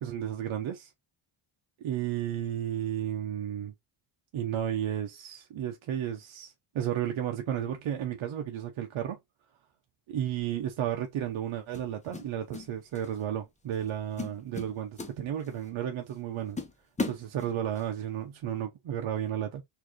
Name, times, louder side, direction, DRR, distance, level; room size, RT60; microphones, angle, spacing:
voice 1, 0.0-0.9 1.8-3.7 4.3-9.2 10.1-16.6 17.0-19.6, right 10 dB, 70° right, 0.9 m, -33 dB
sound 1, 10.4-10.6 11.7-12.7 12.9-13.2 13.7-13.9 14.2-15.7 16.1-16.2 16.6-17.9, left 3 dB, 15° left, 0.9 m, -37 dB
4.4 x 2.7 x 2.9 m
cardioid pair, 95°, 50 cm